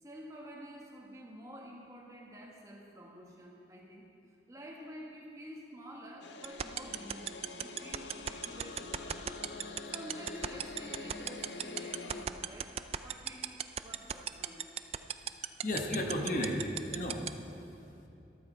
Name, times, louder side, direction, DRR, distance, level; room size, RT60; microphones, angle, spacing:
voice 1, 0.0-4.1 4.5-9.3 9.9-14.7, equal, 20° right, -1 dB, 1.4 m, -49 dB
sound 1, 6.2-12.3, left 3 dB, 80° left, 0.7 m, -45 dB
sound 2, 6.4-17.3, right 9 dB, 35° right, 0.3 m, -33 dB
voice 2, 15.6-18.1, left 1 dB, 45° left, 1 dB, 1.2 m, -35 dB
14.0 x 12.5 x 4.4 m, 2.7 s
head